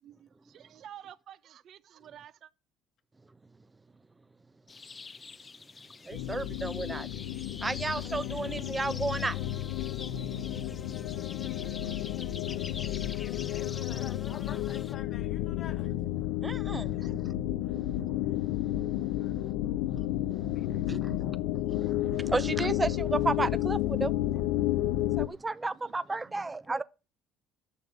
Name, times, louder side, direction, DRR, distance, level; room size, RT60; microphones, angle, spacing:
voice 1, 0.5-2.5 17.0-17.1 25.7-25.9 26.3-26.5, right 10 dB, 60° right, 0.8 m, -50 dB
sound 1, 4.7-14.9, left 4 dB, 30° left, 0.8 m, -46 dB
sound 2, 6.1-25.3, left 14 dB, 90° left, 0.7 m, -31 dB
voice 2, 6.1-7.1 7.6-9.4 16.4-17.3 18.0-18.1 20.2-20.5 20.9-21.4 21.7-24.1 25.2-26.8, right 3 dB, 20° right, 0.6 m, -33 dB
voice 3, 13.5-15.9 17.0-17.1 19.2-20.0 20.5-21.6, left 8 dB, 50° left, 1.2 m, -50 dB
9.7 x 6.7 x 6.7 m
supercardioid pair, 95°, 0 cm